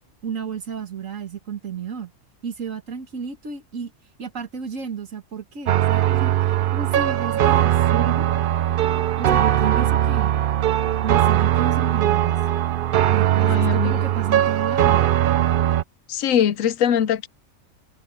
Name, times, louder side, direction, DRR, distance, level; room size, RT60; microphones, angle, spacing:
voice 1, 0.2-2.1 2.4-3.9 4.2-8.3 9.2-10.3 11.0-12.4 13.1-15.1, right 6 dB, 75° right, 2.2 m, -32 dB
sound 1, 5.7-15.8, right 12 dB, 60° right, 0.5 m, -20 dB
voice 2, 13.4-14.0 16.1-17.3, left 9 dB, 85° left, 1.1 m, -22 dB
omnidirectional pair, 1.4 m